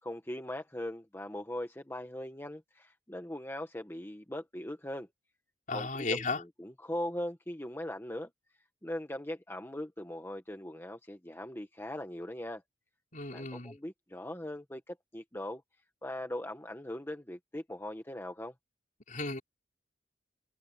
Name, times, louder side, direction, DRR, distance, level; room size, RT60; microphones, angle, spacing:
voice 1, 0.0-5.1 5.7-8.3 8.8-12.6 13.3-15.6 16.0-18.5, left 1 dB, 15° left, 1.5 m, -40 dB
voice 2, 5.7-6.4 13.1-13.8 19.1-19.4, left 3 dB, 45° left, 4.5 m, -34 dB
head